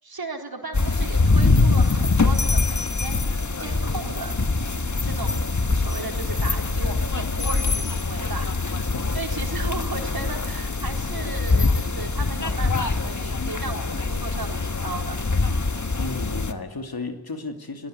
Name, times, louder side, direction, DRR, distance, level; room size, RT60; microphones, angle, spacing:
voice 1, 0.0-3.3 3.6-4.4 4.7-8.5 9.1-15.2, right 3 dB, 85° right, 3 dB, 4.1 m, -36 dB
sound 1, 0.7-16.5, left 3 dB, 55° left, 1.7 m, -23 dB
voice 2, 8.7-9.4 16.0-17.9, left 3 dB, 90° left, 6 dB, 2.6 m, -34 dB
29.0 x 19.0 x 9.6 m, 1.2 s
wide cardioid pair, 40°, 36 cm